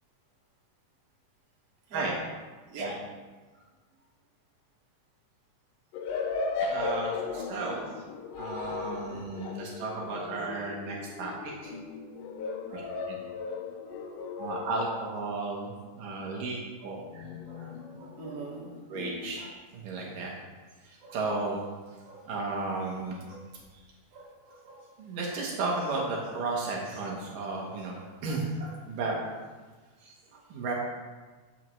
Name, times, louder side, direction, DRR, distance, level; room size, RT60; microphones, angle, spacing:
sound 1, 5.9-15.4 17.1-19.5, left 4 dB, 80° left, 2.3 m, -37 dB
voice 1, 6.6-7.9 8.4-11.7 12.7-12.8 13.1-13.2 14.4-17.3 18.9-20.3 20.8-21.6 22.3-23.2 23.7-23.8 25.0-28.5 28.9-29.2 30.0-30.7, right 3 dB, 80° right, -2 dB, 3.0 m, -34 dB
voice 2, 13.9-14.2 16.8-17.0 17.4-18.7 19.4-19.5 21.0-21.2 22.0-22.2 23.3-23.4 24.1-24.8 28.0-28.7, right 3 dB, 50° right, -5 dB, 3.0 m, -43 dB
14.0 x 7.7 x 3.2 m, 1.3 s
omnidirectional pair, 3.8 m